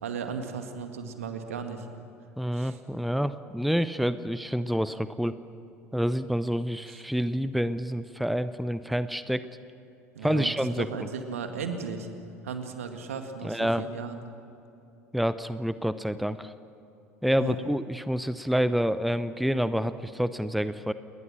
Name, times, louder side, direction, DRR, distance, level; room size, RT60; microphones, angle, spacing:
voice 1, 0.0-1.9 2.5-2.8 6.9-7.0 10.1-12.1 12.4-14.2 17.4-17.6, right 5 dB, 70° right, 6 dB, 2.0 m, -36 dB
voice 2, 2.4-5.4 5.9-9.4 10.2-10.9 13.4-13.8 15.1-16.5 17.2-20.9, equal, ahead, 14 dB, 0.7 m, -28 dB
28.5 x 20.5 x 6.2 m, 2.8 s
figure-of-eight pair, 65°, 8 cm